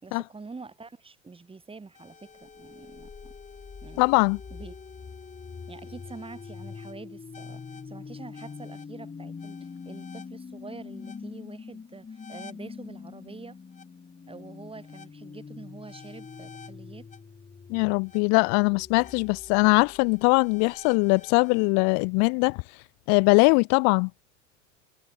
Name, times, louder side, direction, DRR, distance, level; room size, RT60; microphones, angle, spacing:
voice 1, 0.0-3.3 3.8-4.0 4.5-4.8 5.7-13.6 14.3-17.1, right 4 dB, 15° right, 3.5 m, -46 dB
sound 1, 1.9-21.7, left 5 dB, 20° left, 3.9 m, -44 dB
voice 2, 4.0-4.4 17.7-22.6 23.1-24.1, left 38 dB, 45° left, 0.5 m, -21 dB
hypercardioid pair, 90°, 38 cm